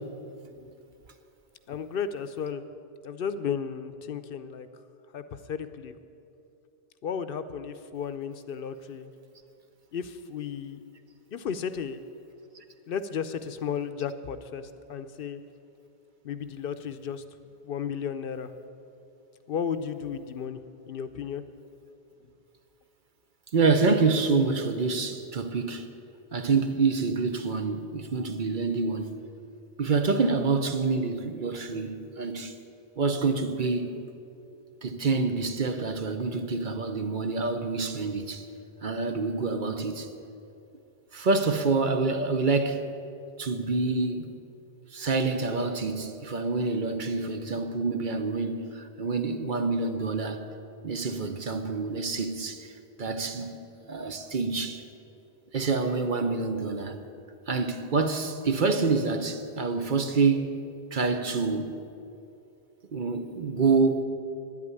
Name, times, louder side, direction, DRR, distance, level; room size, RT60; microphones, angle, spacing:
voice 1, 1.7-2.6 3.0-4.7 5.1-5.9 7.0-9.1 9.9-10.8 11.3-12.0 12.9-15.4 16.2-17.2 17.6-18.5 19.5-21.4, left 7 dB, 65° left, 0.8 m, -34 dB
voice 2, 23.5-25.9 26.3-29.2 29.8-32.5 33.0-34.0 34.8-38.4 38.8-40.1 41.1-42.8 43.4-44.4 44.9-50.4 50.8-52.7 53.0-53.5 53.9-54.8 55.5-57.0 57.5-60.6 60.9-61.8 62.9-64.0, right 4 dB, 55° right, 0.9 m, -27 dB
10.5 x 8.5 x 9.6 m
omnidirectional pair, 1.1 m